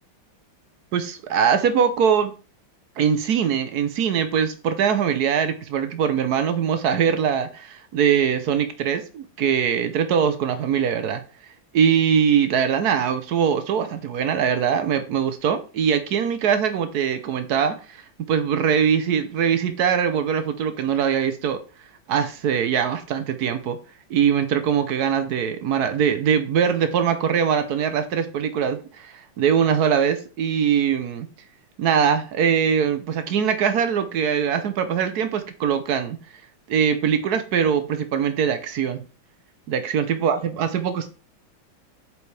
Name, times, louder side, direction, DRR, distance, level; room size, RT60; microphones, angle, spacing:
voice 1, 0.9-2.3 3.0-11.2 11.7-18.0 18.3-21.6 22.1-23.8 24.1-31.3 31.8-36.2 36.7-39.0 39.7-41.1, right 7 dB, 65° right, 1.1 m, -22 dB
8.0 x 4.7 x 3.3 m
omnidirectional pair, 2.2 m